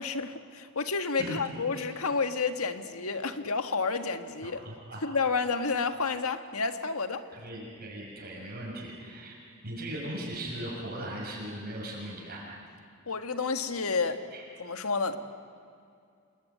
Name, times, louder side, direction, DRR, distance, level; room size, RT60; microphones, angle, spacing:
voice 1, 0.0-4.6 5.0-7.2 13.1-14.2 14.6-15.2, left 4 dB, 85° left, 8 dB, 1.6 m, -30 dB
voice 2, 4.4-5.0 7.3-9.4 9.6-12.4 14.3-14.4, right 1 dB, 45° right, -4 dB, 6.5 m, -38 dB
29.0 x 20.5 x 9.4 m, 2.4 s
head